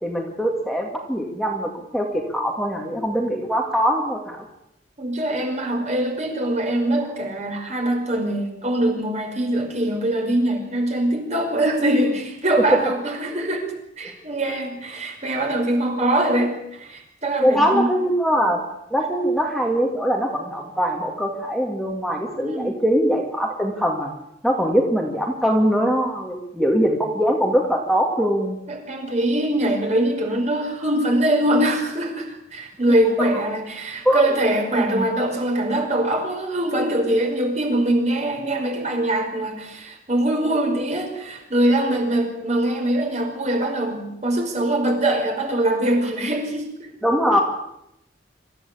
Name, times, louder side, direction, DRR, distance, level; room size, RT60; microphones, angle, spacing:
voice 1, 0.0-4.5 12.7-12.9 13.2-13.5 17.4-18.6 18.9-24.1 24.4-28.6 34.0-34.3 34.8-35.1 47.0-47.4, equal, ahead, 0 dB, 2.3 m, -22 dB
voice 2, 5.0-13.7 14.0-18.0 22.4-22.7 28.7-46.9, right 1 dB, 40° right, 3 dB, 5.5 m, -23 dB
25.5 x 14.5 x 8.6 m, 0.83 s
head